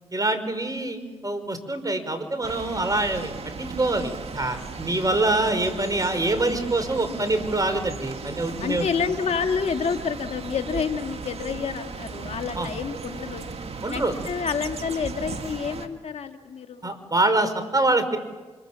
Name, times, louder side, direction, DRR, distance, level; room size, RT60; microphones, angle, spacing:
voice 1, 0.1-3.3 3.6-8.9 12.6-12.7 13.8-14.1 16.8-18.2, right 2 dB, 35° right, 9 dB, 5.3 m, -25 dB
voice 2, 0.9-1.3 7.0-7.5 8.6-13.5 13.9-16.9, left 6 dB, 75° left, 6 dB, 2.0 m, -29 dB
sound 1, 2.4-15.9, right 4 dB, 65° right, 2.2 m, -36 dB
29.5 x 26.0 x 7.5 m, 1.2 s
cardioid pair, 45°, 11 cm